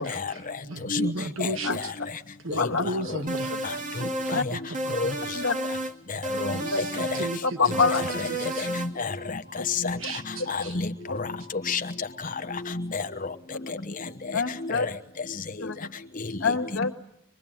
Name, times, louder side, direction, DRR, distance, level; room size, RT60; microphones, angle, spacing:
voice 1, 0.0-1.9 2.4-3.8 4.0-5.1 6.5-8.7 10.0-10.8, right 1 dB, 70° right, 8 dB, 1.4 m, -35 dB
sound 1, 3.3-4.5 4.7-5.9 6.2-7.4 7.7-8.9, right 1 dB, 40° right, 1.8 m, -31 dB
voice 2, 6.4-7.1 8.1-8.3 8.6-9.4 9.7-10.0 10.5-10.9 11.1-11.4 11.7-11.8 12.5-13.0 14.7-14.9, left 4 dB, 40° left, 8 dB, 1.1 m, -29 dB
voice 3, 7.4-8.0 11.1-11.2 14.3-14.9 15.6-15.8 16.4-16.9, left 5 dB, 70° left, 6 dB, 1.8 m, -25 dB
25.5 x 22.5 x 8.9 m, 0.78 s
head